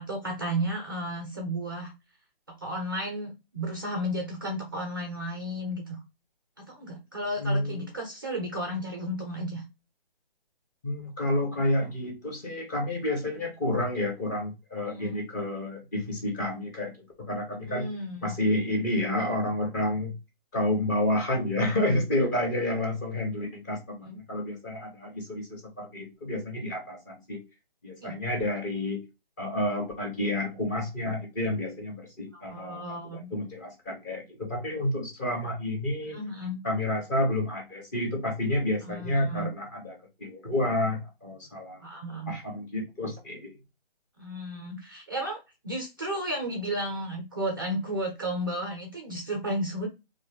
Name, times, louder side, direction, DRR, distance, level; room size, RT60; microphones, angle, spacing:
voice 1, 0.0-1.9 2.6-6.0 6.6-9.6 14.9-15.2 17.7-18.3 24.0-24.2 28.0-28.1 32.5-33.3 36.1-36.6 38.8-39.5 41.8-42.4 44.2-49.9, equal, 25° right, 2 dB, 0.5 m, -33 dB
voice 2, 7.4-7.8 10.8-17.9 18.2-20.1 20.5-27.4 27.8-29.0 29.4-32.8 33.1-36.2 36.6-41.8 42.3-43.5, left 1 dB, 20° left, 0 dB, 1.0 m, -30 dB
3.7 x 2.5 x 3.2 m, 0.26 s
figure-of-eight pair, 150°, 29 cm